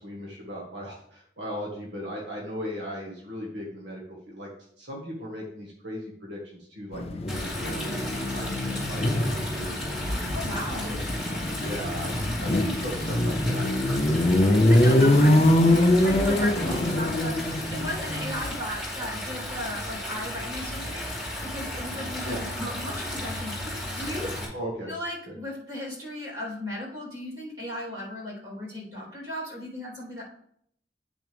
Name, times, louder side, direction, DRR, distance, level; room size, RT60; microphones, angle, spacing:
voice 1, 0.0-4.5 4.8-11.0 11.6-13.7 14.8-15.4 16.6-16.8 22.2-22.4 24.5-24.9 25.3-25.4, equal, 85° right, -2 dB, 1.7 m, -38 dB
sound 1, 6.9-18.6, left 1 dB, 35° left, 0.5 m, -23 dB
Stream, 7.3-24.4, left 1 dB, 5° right, 2.6 m, -34 dB
voice 2, 10.3-11.0 14.7-21.0 21.4-24.3 24.9-30.2, left 1 dB, 25° right, -6 dB, 3.4 m, -36 dB
9.0 x 6.1 x 3.4 m, 0.67 s
head